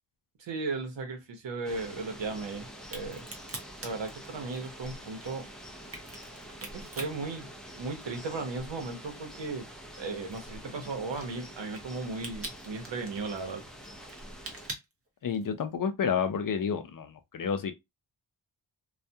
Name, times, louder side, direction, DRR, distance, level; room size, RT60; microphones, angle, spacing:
voice 1, 0.4-3.3 3.8-5.4 6.7-7.5 7.8-9.7 10.0-13.6, right 3 dB, 85° right, 0.9 m, -36 dB
sound 1, 1.6-14.7, equal, ahead, 0.5 m, -46 dB
Crack, 2.8-8.3 8.6-15.6, right 2 dB, 35° right, 0.7 m, -45 dB
voice 2, 15.2-17.7, left 7 dB, 50° left, 0.5 m, -30 dB
2.3 x 2.2 x 2.7 m
wide cardioid pair, 110°, 43 cm